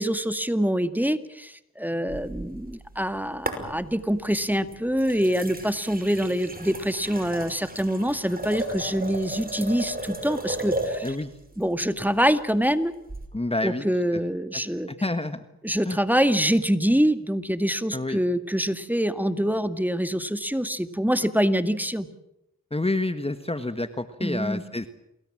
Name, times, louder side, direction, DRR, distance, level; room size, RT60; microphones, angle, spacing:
voice 1, 0.0-11.2 11.6-12.9 13.6-14.9 15.6-22.1 24.2-24.6, equal, 5° right, 10 dB, 2.0 m, -25 dB
sound 1, 2.1-3.1 3.5-4.1 4.7-11.2 13.1-13.3, right 1 dB, 25° right, 5.6 m, -34 dB
voice 2, 13.3-13.8 14.5-14.6 14.9-15.4 15.9-16.0 17.9-18.2 22.7-24.9, left 2 dB, 15° left, 10 dB, 1.5 m, -28 dB
28.5 x 20.5 x 7.5 m, 0.83 s
cardioid pair, 50°, 34 cm